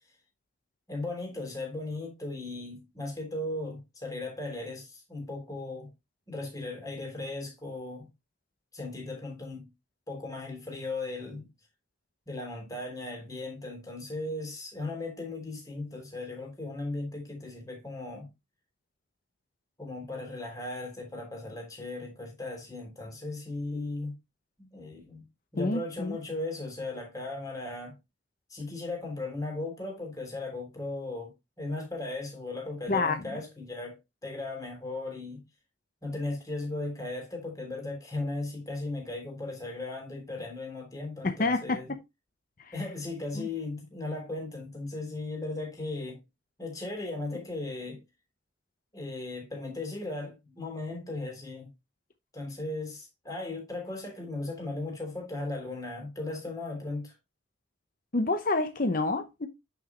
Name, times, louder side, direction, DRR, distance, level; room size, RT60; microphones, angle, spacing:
voice 1, 0.9-5.9 6.3-8.1 8.7-9.7 10.1-11.5 12.3-18.3 19.8-24.1 24.6-25.2 25.5-27.9 28.5-35.4 36.0-41.9 42.7-46.2 46.6-48.0 48.9-51.7 52.3-57.1, left 2 dB, 20° left, 3.3 m, -37 dB
voice 2, 25.6-26.2 32.9-33.2 41.2-41.8 42.6-42.7 43.3-43.5 58.1-59.5, left 3 dB, 45° left, 0.8 m, -28 dB
9.2 x 5.9 x 3.0 m
head